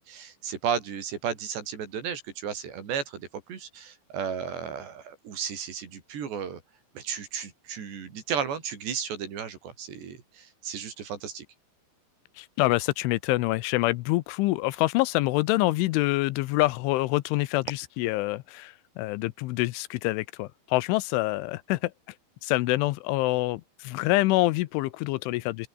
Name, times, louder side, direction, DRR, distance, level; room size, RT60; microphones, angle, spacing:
voice 1, 0.0-6.6 7.0-11.4, right 7 dB, 65° right, 5.9 m, -34 dB
voice 2, 12.4-21.9 22.4-25.7, left 20 dB, 85° left, 3.2 m, -26 dB
open air
omnidirectional pair, 5.4 m